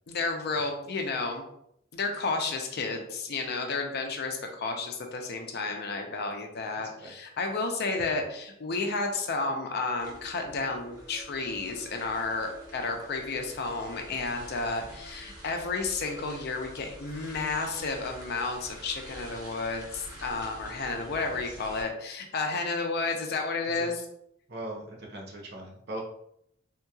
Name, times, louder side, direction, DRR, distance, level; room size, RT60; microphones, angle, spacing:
voice 1, 0.1-1.4 1.9-23.9, left 3 dB, 55° left, 3 dB, 0.5 m, -32 dB
sound 1, 10.0-21.8, right 1 dB, 20° right, 0.9 m, -47 dB
voice 2, 21.1-21.6 23.7-23.9 24.5-26.0, right 1 dB, 55° right, 0 dB, 0.7 m, -41 dB
3.6 x 2.8 x 2.3 m, 0.74 s
head